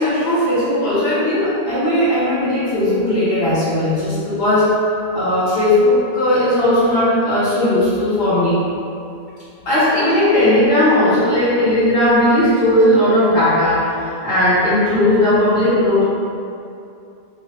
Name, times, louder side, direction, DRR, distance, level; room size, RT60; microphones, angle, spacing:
voice 1, 0.0-4.7 5.1-8.6 9.6-16.0, left 1 dB, 65° left, -12 dB, 1.1 m, -16 dB
3.1 x 2.1 x 4.1 m, 2.6 s
omnidirectional pair, 1.1 m